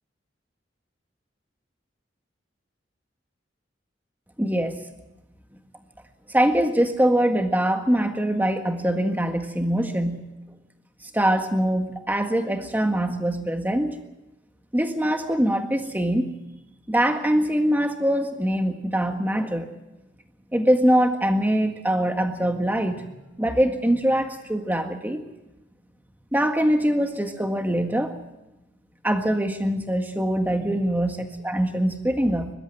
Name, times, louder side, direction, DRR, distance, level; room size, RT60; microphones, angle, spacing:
voice 1, 4.4-4.8 6.3-10.2 11.1-14.0 14.7-16.3 16.9-19.7 20.5-23.1 23.4-25.2 26.3-28.1 29.0-31.1 31.4-32.5, right 1 dB, 10° right, 5 dB, 1.7 m, -23 dB
22.5 x 12.5 x 9.2 m, 0.98 s
head